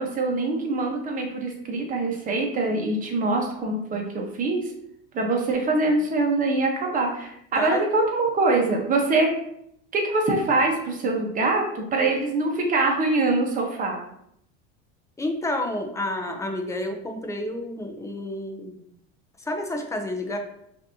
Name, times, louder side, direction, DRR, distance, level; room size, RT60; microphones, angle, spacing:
voice 1, 0.0-4.6 5.1-9.3 9.9-14.0, right 2 dB, 25° right, 1 dB, 0.9 m, -24 dB
voice 2, 15.2-18.8 19.5-20.4, left 1 dB, 10° left, 3 dB, 0.5 m, -29 dB
5.8 x 2.7 x 2.7 m, 0.74 s
supercardioid pair, 135°, 30 cm